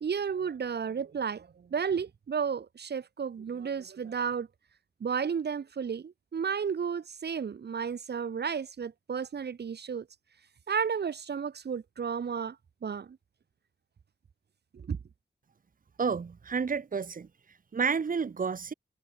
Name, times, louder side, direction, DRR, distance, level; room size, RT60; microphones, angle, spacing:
voice 1, 0.0-4.5 5.0-10.1 10.7-12.6 12.8-13.2 14.7-15.0, right 6 dB, 70° right, 1.8 m, -32 dB
voice 2, 16.0-17.3 17.7-18.7, right 5 dB, 50° right, 1.4 m, -30 dB
wide cardioid pair, 80°, 18 cm